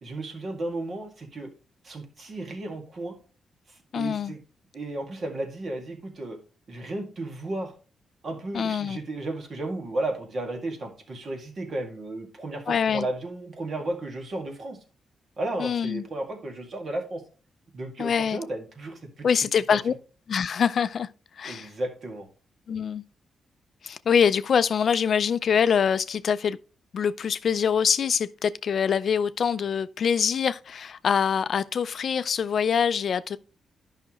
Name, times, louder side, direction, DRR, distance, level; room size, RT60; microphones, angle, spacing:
voice 1, 0.0-1.5 1.8-3.2 3.7-4.4 4.7-6.4 6.7-7.7 8.2-14.8 15.4-17.2 17.7-19.3 19.7-19.9 21.4-22.3, right 2 dB, 45° right, 1.8 m, -34 dB
voice 2, 3.9-4.3 8.5-9.0 12.7-13.0 15.6-16.0 18.0-18.4 19.2-19.9 20.3-21.1 21.4-21.7 22.7-23.0 23.8-26.6 26.9-33.4, left 7 dB, 55° left, 0.3 m, -24 dB
11.0 x 5.7 x 3.0 m
cardioid pair, 115°, 0 cm